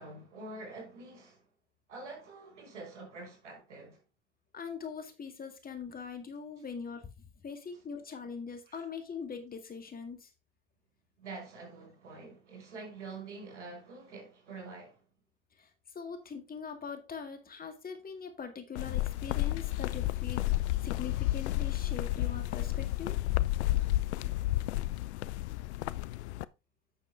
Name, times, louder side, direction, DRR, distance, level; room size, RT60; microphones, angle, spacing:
voice 1, 0.0-1.5 1.9-4.0 8.7-8.8 11.2-15.0, right 3 dB, 80° right, 5.6 m, -46 dB
voice 2, 4.5-7.1 7.4-10.3 15.6-15.7 15.9-23.2, left 6 dB, 25° left, 2.1 m, -42 dB
sound 1, 18.8-26.5, left 16 dB, 70° left, 0.6 m, -31 dB
8.9 x 6.8 x 3.5 m
hypercardioid pair, 85°, 35 cm